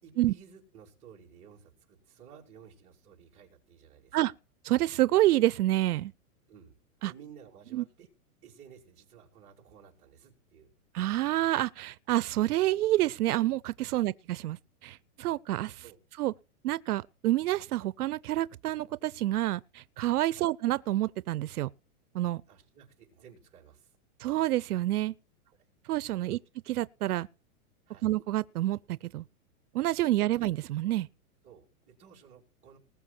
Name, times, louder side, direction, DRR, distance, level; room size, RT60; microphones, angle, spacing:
voice 1, 0.0-4.3 6.5-6.8 7.0-8.1 8.4-10.7 13.9-14.0 15.8-16.0 20.3-20.5 22.5-23.9 26.2-26.4 27.9-28.1 30.3-30.4 31.4-32.8, right 7 dB, 15° right, 3.0 m, -55 dB
voice 2, 4.6-6.1 7.0-7.1 7.7-7.8 10.9-15.8 16.2-16.3 16.6-21.7 22.1-22.4 24.2-25.1 25.9-26.4 26.7-27.3 28.0-28.8 29.1-29.2 29.7-31.1, right 15 dB, 85° right, 0.6 m, -28 dB
20.0 x 6.9 x 4.4 m
supercardioid pair, 175°, 44 cm